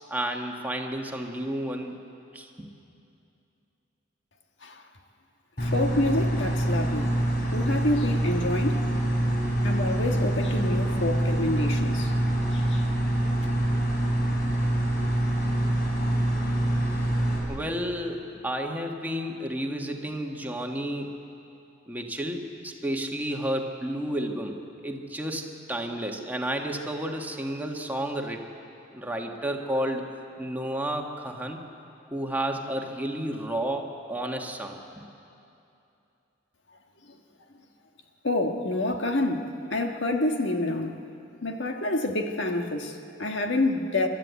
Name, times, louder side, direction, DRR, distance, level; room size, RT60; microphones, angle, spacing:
voice 1, 0.1-2.0 2.3-2.7 17.5-21.2 21.9-24.6 24.8-28.4 28.9-30.1 30.4-31.6 32.1-35.0, right 1 dB, 10° right, 2 dB, 1.5 m, -31 dB
voice 2, 5.6-7.2 7.5-8.9 9.6-12.1 12.5-12.9 13.4-13.5 37.1-37.2 38.2-41.0 41.4-44.1, left 2 dB, 75° left, 4 dB, 1.6 m, -28 dB
sound 1, 5.6-17.4, right 1 dB, 55° left, 5.0 m, -25 dB
29.0 x 13.0 x 8.3 m, 2.7 s
head